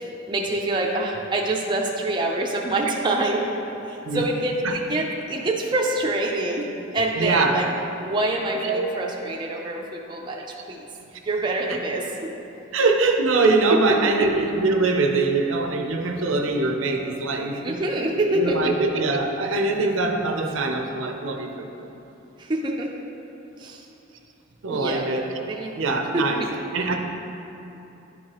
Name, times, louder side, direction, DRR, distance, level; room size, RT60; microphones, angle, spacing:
voice 1, 0.3-3.4 3.9-6.7 6.9-7.7 8.0-10.4 10.7-10.8 11.3-12.3 13.7-14.1 17.6-18.7 22.4-22.9 23.6-23.8 24.7-25.8 26.1-26.5, right 2 dB, 20° right, -1 dB, 0.4 m, -26 dB
voice 2, 7.2-7.7 8.6-8.9 11.7-12.0 12.7-17.8 18.3-21.9 24.6-25.4 25.8-26.5 26.7-27.0, right 3 dB, 70° right, 4 dB, 0.6 m, -23 dB
10.5 x 4.6 x 3.0 m, 3.0 s
head